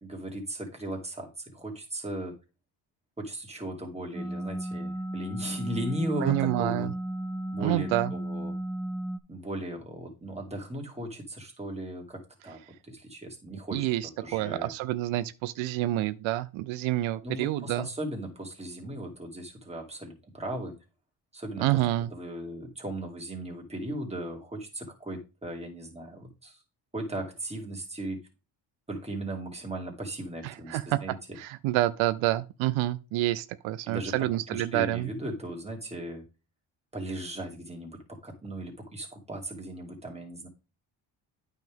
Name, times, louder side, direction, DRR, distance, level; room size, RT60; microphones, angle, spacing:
voice 1, 0.0-2.3 3.2-6.9 7.5-8.5 9.3-13.9 14.2-14.7 17.2-20.7 21.3-21.7 22.1-26.6 26.9-28.2 28.9-31.2 33.9-36.2 36.9-40.5, right 1 dB, 15° right, 2.5 m, -37 dB
sound 1, 4.1-9.2, right 1 dB, 5° left, 0.6 m, -34 dB
voice 2, 6.2-6.9 7.6-8.1 13.7-17.9 21.6-22.1 30.4-31.0 31.4-35.1, right 15 dB, 90° right, 0.6 m, -28 dB
9.1 x 5.7 x 3.6 m
cardioid pair, 90°, 46 cm